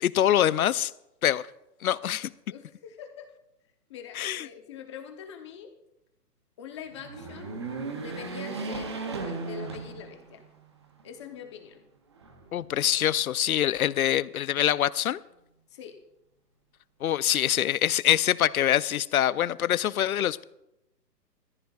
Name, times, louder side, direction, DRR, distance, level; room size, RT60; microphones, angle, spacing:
voice 1, 0.0-0.9 1.2-1.4 1.8-2.3 4.2-4.5 12.5-15.2 17.0-20.4, left 11 dB, 60° left, 0.6 m, -24 dB
voice 2, 2.5-3.3 3.9-5.7 6.6-7.6 7.9-10.4 11.0-11.8 15.7-15.9, left 8 dB, 15° left, 0.8 m, -44 dB
sound 1, 6.9-10.5 11.0-11.1 12.2-13.0, right 4 dB, 15° right, 0.6 m, -36 dB
29.0 x 14.0 x 2.4 m
hypercardioid pair, 160°, 49 cm